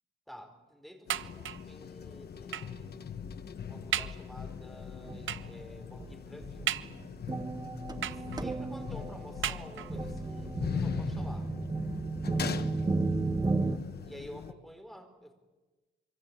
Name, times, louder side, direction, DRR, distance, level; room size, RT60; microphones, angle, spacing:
voice 1, 0.3-3.1 3.7-6.8 8.0-11.5 14.0-15.3, equal, ahead, 5 dB, 4.5 m, -50 dB
sound 1, 1.1-14.5, left 7 dB, 55° left, 1.2 m, -41 dB
sound 2, 1.1-1.8 2.5-2.8 3.4-3.5 3.9-4.3 5.3-5.6 6.7-7.3 8.0-8.6 9.4-10.1 10.9-11.0 11.3-11.4, right 11 dB, 85° right, 0.8 m, -36 dB
sound 3, 5.1-5.4 6.0-6.1 6.4-13.8, right 3 dB, 20° right, 1.4 m, -34 dB
25.5 x 24.5 x 8.8 m, 1.2 s
wide cardioid pair, 150°, 20 cm